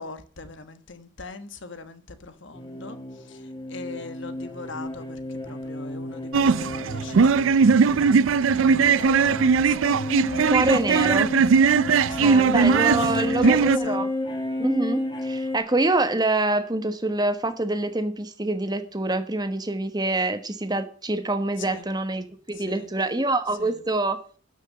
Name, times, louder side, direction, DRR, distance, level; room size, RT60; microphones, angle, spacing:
voice 1, 0.0-8.2 8.8-10.6 11.8-14.0 21.6-21.8 22.5-22.9 23.6-23.8, left 3 dB, 65° left, 1.3 m, -40 dB
sound 1, 2.5-15.6, left 1 dB, 25° left, 2.1 m, -31 dB
sound 2, 6.3-13.8, right 5 dB, 80° right, 0.4 m, -19 dB
voice 2, 10.5-11.3 12.2-14.1 14.6-24.2, right 2 dB, 20° right, 1.3 m, -26 dB
12.5 x 6.3 x 7.6 m
head